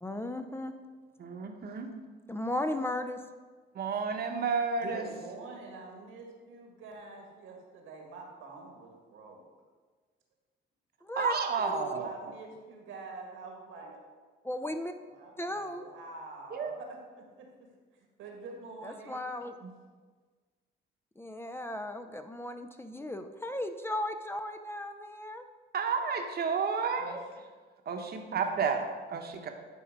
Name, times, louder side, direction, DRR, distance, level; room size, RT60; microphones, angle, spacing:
voice 1, 0.0-0.7 2.3-3.2 11.0-11.3 11.6-11.9 14.4-14.9 15.4-15.9 18.8-19.5 21.2-25.4, left 1 dB, 10° left, 7 dB, 0.5 m, -36 dB
voice 2, 1.2-1.9 3.7-5.0 11.2-12.1 16.5-16.7 19.6-19.7 25.7-27.2 27.9-29.5, right 5 dB, 50° right, 4 dB, 1.0 m, -31 dB
voice 3, 4.8-9.4 11.5-14.0 15.1-17.7 18.2-19.2 27.0-27.2, right 3 dB, 90° right, 1 dB, 1.8 m, -46 dB
10.0 x 4.0 x 5.2 m, 1.4 s
cardioid pair, 90°, 20 cm